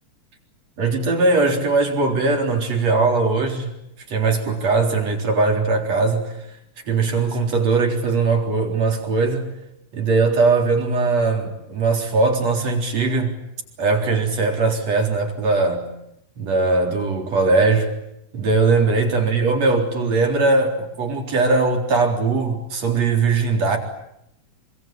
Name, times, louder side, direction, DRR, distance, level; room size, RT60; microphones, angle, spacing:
voice 1, 0.8-3.7 4.1-6.5 6.9-9.5 9.9-13.4 13.8-15.9 16.4-17.9 18.3-23.8, right 3 dB, 45° right, 4.9 m, -20 dB
26.0 x 25.0 x 8.8 m
omnidirectional pair, 4.3 m